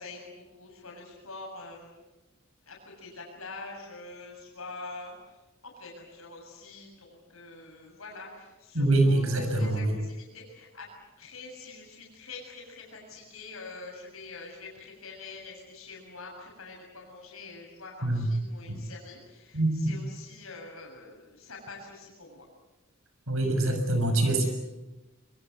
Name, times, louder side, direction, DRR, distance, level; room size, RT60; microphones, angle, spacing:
voice 1, 0.0-1.9 2.7-5.1 5.8-10.9 11.2-22.5, left 3 dB, 90° left, -1 dB, 7.1 m, -45 dB
voice 2, 8.7-9.9 18.0-18.3 19.5-20.0 23.3-24.5, right 2 dB, 80° right, 6 dB, 6.8 m, -24 dB
26.0 x 23.0 x 8.1 m, 1.1 s
head